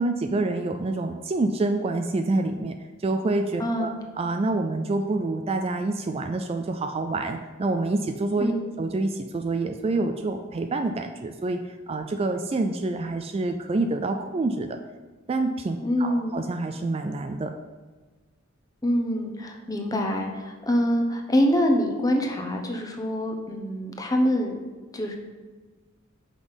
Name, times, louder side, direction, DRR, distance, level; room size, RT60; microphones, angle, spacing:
voice 1, 0.0-3.9 4.2-8.5 8.8-14.8 15.3-17.5, right 2 dB, 30° right, 6 dB, 0.3 m, -27 dB
voice 2, 3.6-4.0 8.4-8.7 15.8-16.3 18.8-24.6 24.9-25.2, equal, 20° left, 2 dB, 0.9 m, -25 dB
6.1 x 5.3 x 5.2 m, 1.3 s
head